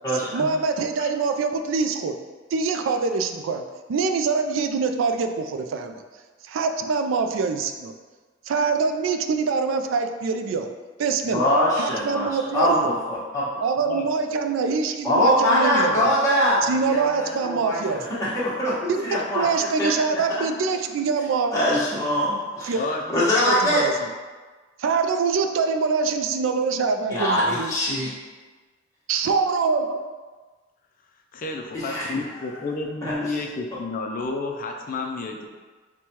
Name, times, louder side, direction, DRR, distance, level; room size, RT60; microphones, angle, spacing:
voice 1, 0.1-2.2 2.5-3.6 3.9-6.0 6.4-7.9 8.5-10.7 11.0-11.4 11.8-13.0 13.6-16.1 16.6-18.1 18.9-21.5 22.6-22.8 23.5-23.9 24.8-27.7 29.1-30.1, right 4 dB, 75° right, 6 dB, 0.3 m, -24 dB
voice 2, 11.3-12.3 12.5-13.4 15.0-19.4 19.8-19.9 21.5-22.7 23.1-23.8 27.1-28.1 31.7-32.1 33.0-33.1, equal, 15° left, -10 dB, 1.1 m, -22 dB
voice 3, 31.3-35.5, left 3 dB, 45° left, 2 dB, 0.4 m, -31 dB
6.1 x 2.2 x 2.8 m, 1.3 s
head